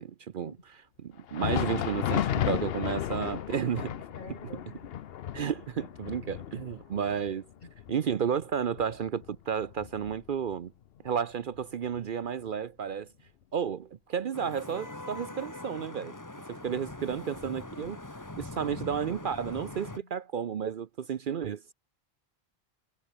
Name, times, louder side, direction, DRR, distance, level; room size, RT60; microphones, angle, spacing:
voice 1, 0.0-4.0 5.3-7.5 7.9-10.7 11.0-13.1 13.5-16.1 16.5-18.0 18.4-21.7, right 7 dB, 60° right, 0.8 m, -32 dB
Thunder, 1.2-10.6 11.0-11.1 11.8-12.0 13.0-13.1, left 10 dB, 70° left, 0.9 m, -34 dB
voice 2, 4.1-5.1 7.6-7.7 18.6-18.7 19.2-20.1, left 2 dB, 50° left, 3.2 m, -49 dB
Vehicle horn car horn honking / Traffic noise roadway noise, 14.3-20.0, left 2 dB, 20° left, 1.4 m, -42 dB
omnidirectional pair, 1.1 m